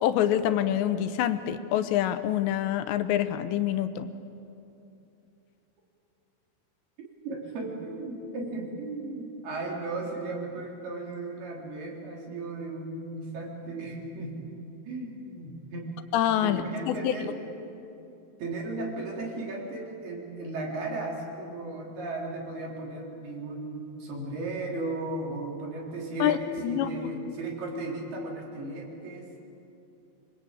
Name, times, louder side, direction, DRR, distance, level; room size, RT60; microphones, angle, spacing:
voice 1, 0.0-4.1 16.1-17.3 26.2-26.4 26.6-26.9, left 11 dB, 80° left, 10 dB, 3.0 m, -26 dB
voice 2, 7.0-14.5 14.9-16.0 16.4-17.4 18.4-29.4, right 2 dB, 60° right, -1 dB, 5.5 m, -36 dB
25.5 x 24.5 x 9.0 m, 2.8 s
omnidirectional pair, 5.2 m